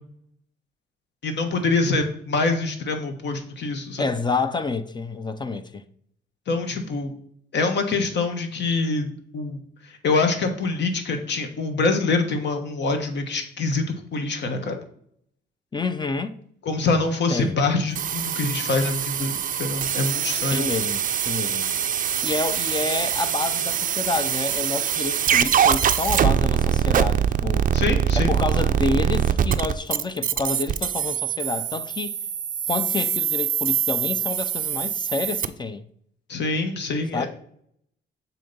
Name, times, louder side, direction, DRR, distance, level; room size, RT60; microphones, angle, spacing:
voice 1, 1.2-4.1 6.5-7.1 7.5-9.6 10.0-14.8 16.6-20.6 27.7-28.3 36.3-37.3, left 3 dB, 60° left, 1.2 m, -25 dB
voice 2, 4.0-5.8 15.7-16.3 17.3-17.6 20.5-21.7 22.2-27.7 28.1-32.1 32.7-35.8 37.1-37.3, left 3 dB, 20° left, 0.5 m, -28 dB
sound 1, 18.0-35.5, right 9 dB, 45° right, 0.4 m, -24 dB
7.3 x 2.9 x 5.4 m
cardioid pair, 90°, 20 cm